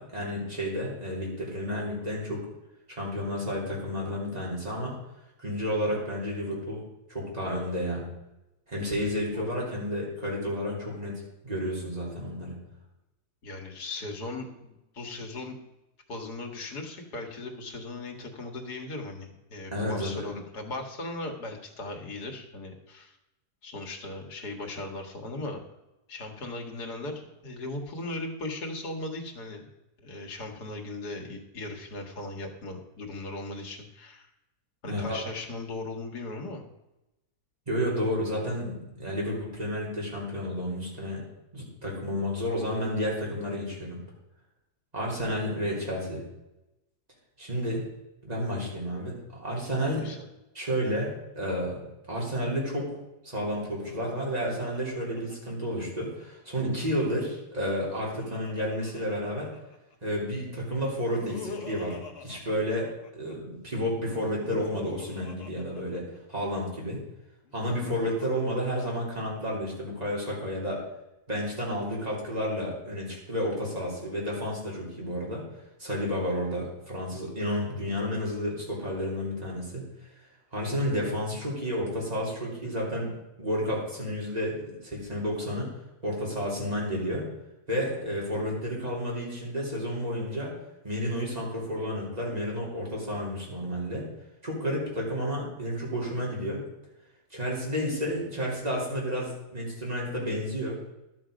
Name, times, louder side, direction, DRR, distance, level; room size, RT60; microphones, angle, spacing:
voice 1, 0.0-2.4 2.9-5.0 5.4-6.8 7.1-8.0 8.7-12.6 19.7-20.3 34.8-35.2 37.7-41.2 41.5-44.0 44.9-46.2 47.4-47.8 48.2-50.1 50.5-59.5 60.0-62.9 63.1-67.0 67.5-70.8 71.3-75.4 75.8-79.8 80.5-83.1 83.4-85.7 86.0-87.3 87.7-90.6 90.8-94.1 94.4-96.6 97.3-100.8, equal, 25° right, -4 dB, 3.2 m, -31 dB
voice 2, 13.4-15.6 16.1-23.2 23.6-25.6 26.1-29.7 30.0-34.3 34.8-36.6 49.9-50.3, left 2 dB, 75° left, 2 dB, 2.1 m, -38 dB
Laughter, 53.7-56.2 57.6-60.0 60.8-63.3 64.2-66.6 67.5-69.4, left 4 dB, 40° left, 1.3 m, -45 dB
11.5 x 7.8 x 5.0 m, 0.94 s
omnidirectional pair, 1.7 m